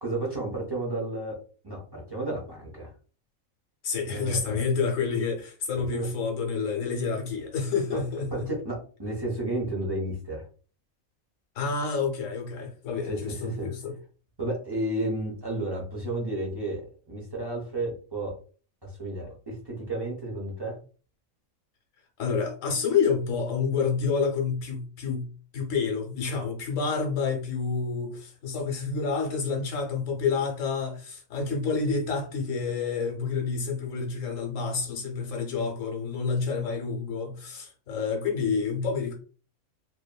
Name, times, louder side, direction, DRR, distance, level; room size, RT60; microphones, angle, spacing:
voice 1, 0.0-1.4 1.6-2.9 4.0-4.6 5.8-6.1 7.9-8.0 8.3-10.4 13.1-13.7 14.4-16.8 17.1-18.4 18.8-20.8, right 1 dB, 35° right, 0.4 m, -32 dB
voice 2, 3.8-8.5 11.5-13.9 22.2-39.1, left 5 dB, 70° left, 1.1 m, -29 dB
2.7 x 2.5 x 2.2 m
omnidirectional pair, 1.5 m